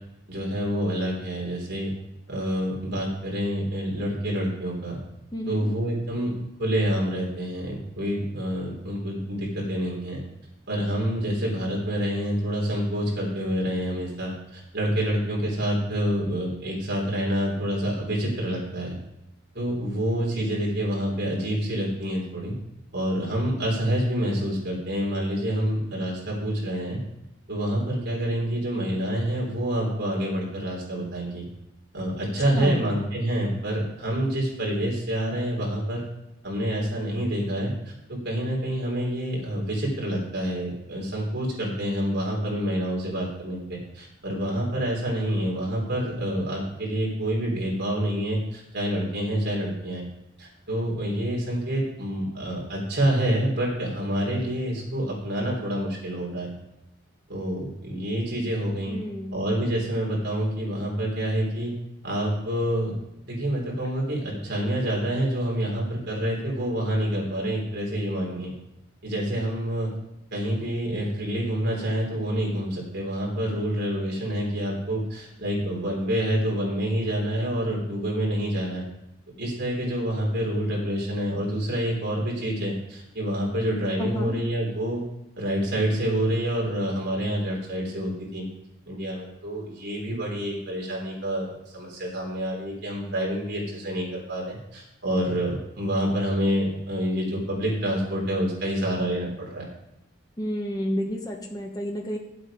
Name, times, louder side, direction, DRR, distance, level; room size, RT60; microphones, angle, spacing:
voice 1, 0.3-1.9 2.3-5.0 5.5-6.3 6.6-10.2 10.7-19.0 19.5-22.5 22.9-27.0 27.5-31.5 31.9-36.0 36.4-50.1 50.4-56.5 57.3-59.0 59.3-61.7 62.0-62.9 63.3-68.5 69.0-69.9 70.3-78.9 79.4-85.0 85.4-88.4 88.9-99.7, equal, 50° right, -3 dB, 3.8 m, -27 dB
voice 2, 5.3-5.7 32.5-32.9 58.9-59.5 84.0-84.3 100.4-102.2, equal, 20° left, 1 dB, 1.1 m, -30 dB
11.0 x 7.9 x 5.1 m, 0.88 s
head